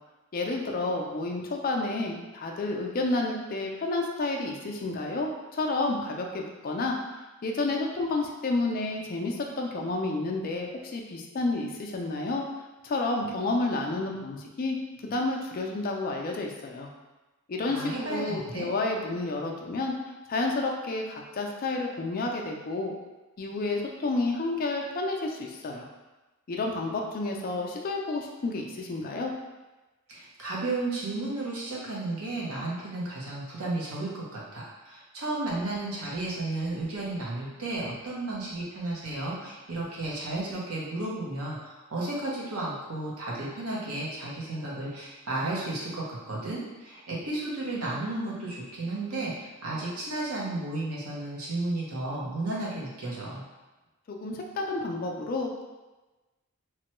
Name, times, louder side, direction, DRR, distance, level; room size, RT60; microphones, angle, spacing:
voice 1, 0.3-7.0 7.4-12.4 12.8-14.8 15.0-16.9 17.5-19.9 20.3-22.9 23.4-25.9 26.5-29.3 54.1-55.6, left 2 dB, 40° left, 1 dB, 0.4 m, -30 dB
voice 2, 17.6-18.7 30.1-53.4, right 2 dB, 85° right, -5 dB, 0.9 m, -33 dB
3.1 x 2.1 x 3.0 m, 1.1 s
head